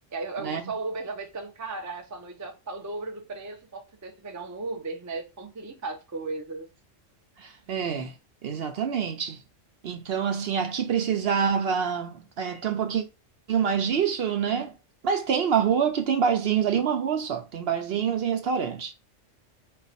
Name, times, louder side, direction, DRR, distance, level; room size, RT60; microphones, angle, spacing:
voice 1, 0.1-6.7, right 3 dB, 25° right, 0.4 m, -36 dB
voice 2, 7.4-8.1 8.4-9.4 9.8-13.0 13.5-14.7 15.0-18.9, right 7 dB, 60° right, 0.7 m, -26 dB
4.1 x 2.3 x 4.0 m
omnidirectional pair, 1.3 m